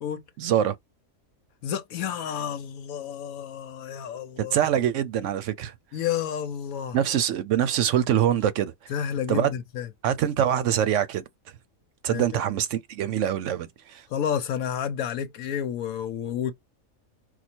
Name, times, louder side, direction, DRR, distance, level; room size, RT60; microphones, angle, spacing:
voice 1, 0.4-0.8 4.4-5.7 6.9-8.9 9.3-9.5 10.0-11.2 12.0-14.0, right 10 dB, 70° right, 0.9 m, -24 dB
voice 2, 1.6-4.6 5.9-7.0 8.9-9.9 12.1-12.3 14.1-16.5, left 8 dB, 85° left, 1.1 m, -30 dB
4.4 x 2.3 x 4.3 m
omnidirectional pair, 1.5 m